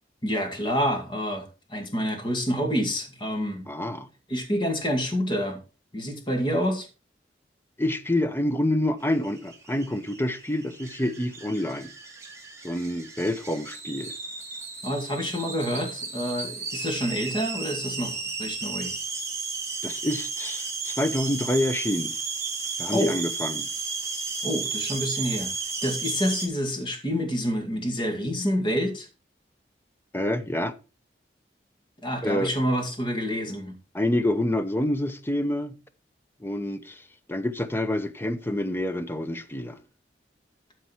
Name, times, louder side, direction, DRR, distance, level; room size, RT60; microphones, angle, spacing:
voice 1, 0.2-3.7 4.3-5.6 5.9-6.9 14.8-18.9 22.9-23.1 24.4-25.5 25.8-29.1 32.0-33.8, equal, 30° left, 2.2 m, -28 dB
voice 2, 3.7-4.1 7.8-11.9 12.6-14.2 19.8-22.2 22.8-23.7 30.1-30.7 32.2-32.5 33.9-35.8 36.4-39.8, left 1 dB, 15° left, 0.7 m, -27 dB
sound 1, 9.1-26.5, right 4 dB, 15° right, 1.9 m, -34 dB
12.5 x 4.6 x 4.5 m
head